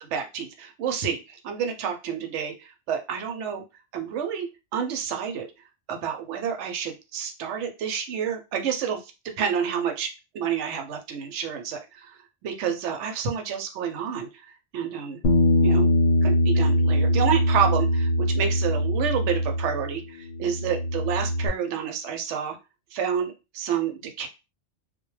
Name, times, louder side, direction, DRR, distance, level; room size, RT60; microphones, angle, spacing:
voice 1, 0.0-3.6 3.9-5.5 5.9-9.1 9.4-15.2 15.6-15.9 16.2-22.6 22.9-24.3, right 8 dB, 75° right, 5 dB, 0.9 m, -29 dB
Bass guitar, 15.2-20.0 20.3-21.5, left 1 dB, 60° left, 0.7 m, -22 dB
2.2 x 2.1 x 3.1 m, 0.27 s
omnidirectional pair, 1.2 m